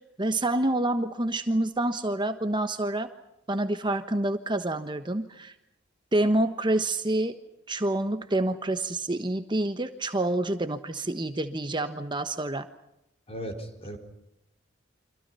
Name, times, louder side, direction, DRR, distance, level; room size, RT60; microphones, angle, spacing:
voice 1, 0.2-3.1 3.5-5.5 6.1-7.4 7.7-12.7, right 1 dB, 25° right, 8 dB, 1.3 m, -27 dB
voice 2, 13.3-14.0, equal, 30° left, 4 dB, 4.5 m, -36 dB
29.5 x 26.0 x 5.7 m, 0.84 s
head